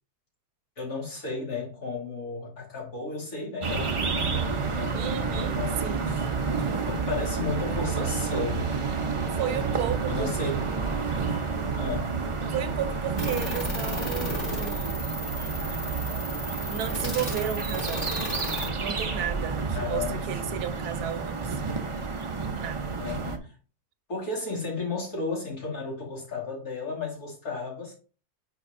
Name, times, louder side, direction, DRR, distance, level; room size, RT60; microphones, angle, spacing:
voice 1, 0.8-6.2 6.9-8.7 10.1-10.7 11.8-12.1 19.7-20.7 23.0-23.5 24.1-27.9, left 4 dB, 70° left, 2.9 m, -34 dB
sound 1, 3.6-23.4, right 4 dB, 50° right, 0.3 m, -30 dB
voice 2, 4.9-6.1 9.4-10.3 12.5-15.0 16.7-18.1 18.8-21.6 22.5-23.0, right 9 dB, 90° right, 1.3 m, -33 dB
sound 2, 13.2-18.7, left 1 dB, 50° left, 2.2 m, -35 dB
9.6 x 4.6 x 2.6 m
omnidirectional pair, 1.6 m